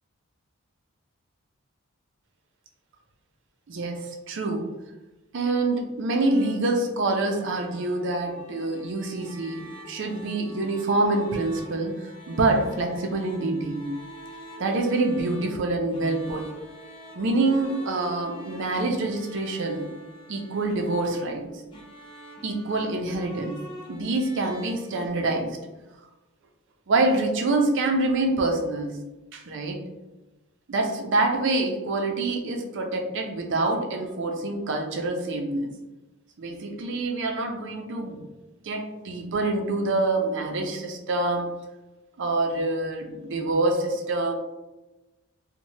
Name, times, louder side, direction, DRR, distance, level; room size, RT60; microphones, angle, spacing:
voice 1, 3.7-4.8 5.3-14.0 14.6-16.6 17.1-19.9 20.3-21.5 22.4-25.6 26.9-29.0 29.3-29.9 30.7-35.7 36.4-38.2 38.6-41.5 42.2-44.3, right 2 dB, 55° right, 4 dB, 0.4 m, -26 dB
sound 1, 6.1-25.1, right 2 dB, 20° left, 0.5 m, -45 dB
3.1 x 2.1 x 2.7 m, 1.1 s
head